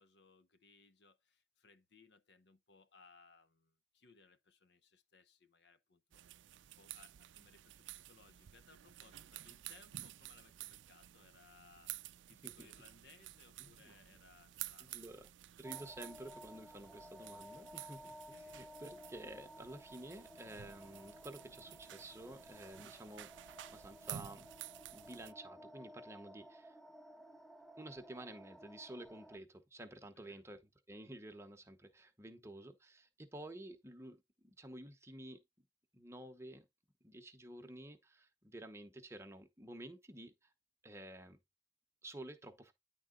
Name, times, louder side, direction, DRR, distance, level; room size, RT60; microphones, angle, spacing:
voice 1, 0.0-6.4 6.8-11.9 12.3-15.0 17.9-18.6 30.0-30.4, left 4 dB, 65° left, 0.7 m, -65 dB
sound 1, 6.1-25.3, right 13 dB, 80° right, 0.4 m, -52 dB
voice 2, 13.6-14.2 14.8-15.3 15.6-24.5 24.9-26.8 27.8-30.6 30.9-35.4 35.9-36.7 37.0-40.5 40.8-41.4 42.0-42.7, right 1 dB, 15° right, 0.9 m, -51 dB
sound 2, 15.6-29.4, equal, ahead, 0.3 m, -56 dB
10.0 x 3.8 x 3.8 m
head